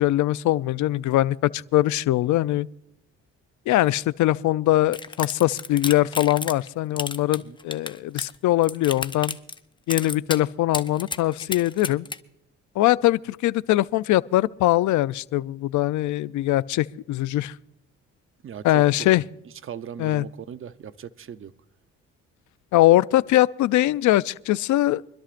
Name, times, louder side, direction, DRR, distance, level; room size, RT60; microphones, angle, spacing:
voice 1, 0.0-2.7 3.7-9.4 9.9-12.1 12.8-17.5 18.6-19.2 20.0-20.3 22.7-25.0, left 15 dB, 75° left, 0.5 m, -22 dB
sound 1, 4.9-6.7 7.0-8.3 8.6-9.6 9.9-10.4 10.7-12.2, left 3 dB, 15° left, 0.7 m, -31 dB
voice 2, 18.4-19.1 19.6-21.5, right 8 dB, 45° right, 0.7 m, -39 dB
25.0 x 12.5 x 2.5 m
cardioid pair, 90°, 30 cm